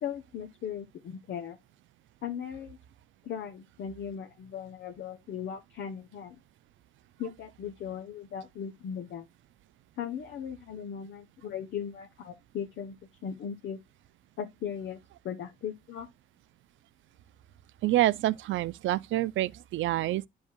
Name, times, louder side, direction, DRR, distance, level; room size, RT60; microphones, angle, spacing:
voice 1, 0.0-1.6 2.2-2.8 3.2-6.4 7.2-9.3 10.0-13.0 13.2-13.8 14.4-15.0 15.2-16.1, left 8 dB, 65° left, 1.0 m, -38 dB
voice 2, 17.8-20.3, right 15 dB, 75° right, 0.5 m, -27 dB
10.5 x 5.3 x 2.2 m
cardioid pair, 90°, 20 cm